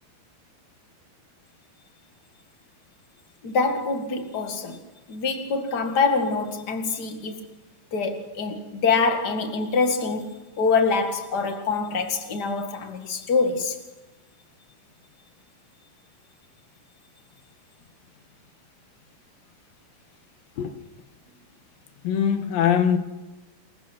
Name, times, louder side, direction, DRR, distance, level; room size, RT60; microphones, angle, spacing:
voice 1, 3.4-4.8 5.1-7.5 7.9-13.8, left 4 dB, 40° left, 1.6 m, -25 dB
voice 2, 22.0-23.0, left 8 dB, 70° left, 3.0 m, -21 dB
28.5 x 15.0 x 6.1 m
omnidirectional pair, 4.5 m